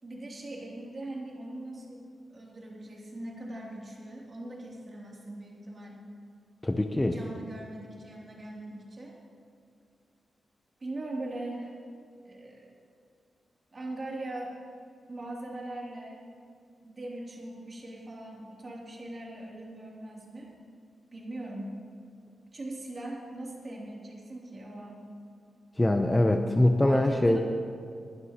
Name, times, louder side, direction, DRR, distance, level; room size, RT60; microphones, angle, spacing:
voice 1, 0.0-6.0 7.0-9.1 10.8-11.8 12.2-12.7 13.7-14.6 15.1-16.2 16.8-20.5 21.1-21.7 22.5-25.1 26.1-26.3 26.8-27.4, right 1 dB, 35° right, -3 dB, 2.6 m, -40 dB
voice 2, 6.6-7.1 25.8-27.4, left 1 dB, 10° left, 5 dB, 0.5 m, -23 dB
20.5 x 11.5 x 2.9 m, 2.3 s
wide cardioid pair, 135°, 0 cm